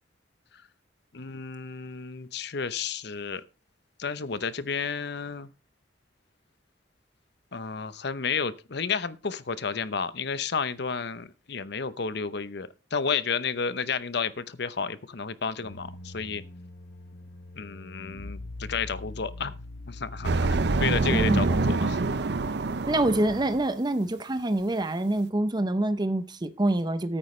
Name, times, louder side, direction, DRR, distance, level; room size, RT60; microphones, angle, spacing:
voice 1, 1.1-3.4 4.0-5.5 7.5-16.4 17.6-19.6 19.9-22.0, left 5 dB, 65° left, 0.8 m, -31 dB
sound 1, 15.6-21.0, left 2 dB, 90° left, 1.4 m, -42 dB
sound 2, 20.2-23.7, right 3 dB, 65° right, 0.6 m, -26 dB
voice 2, 21.1-21.5 22.9-27.2, right 1 dB, 25° right, 0.7 m, -26 dB
14.0 x 8.9 x 3.2 m
head